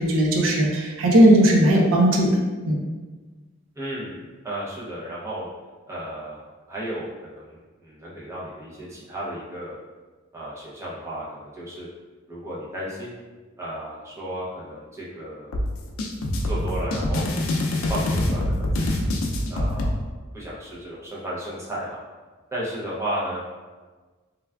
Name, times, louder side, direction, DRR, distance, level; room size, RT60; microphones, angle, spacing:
voice 1, 0.0-2.3 2.7-2.8, right 1 dB, 70° right, 0 dB, 0.4 m, -17 dB
voice 2, 3.8-5.5 5.9-9.8 10.3-11.9 12.3-13.1 13.6-15.6 16.4-17.3 17.9-19.1 19.5-20.0 20.3-22.0 22.5-23.4, right 1 dB, 15° right, -7 dB, 0.5 m, -34 dB
sound 1, 15.5-19.9, left 1 dB, 75° left, 0.4 m, -25 dB
3.3 x 2.3 x 2.2 m, 1.3 s
head